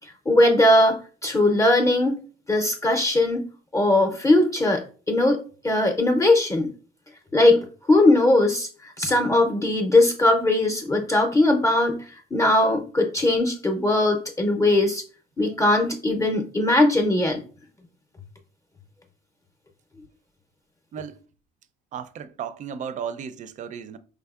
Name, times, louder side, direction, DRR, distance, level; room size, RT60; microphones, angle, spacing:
voice 1, 0.3-2.2 2.5-3.4 3.7-6.7 7.3-15.0 15.4-17.4, left 1 dB, 20° left, 0.5 m, -20 dB
voice 2, 21.9-24.0, right 7 dB, 45° right, 0.4 m, -34 dB
4.7 x 3.5 x 2.3 m
cardioid pair, 110°, 17 cm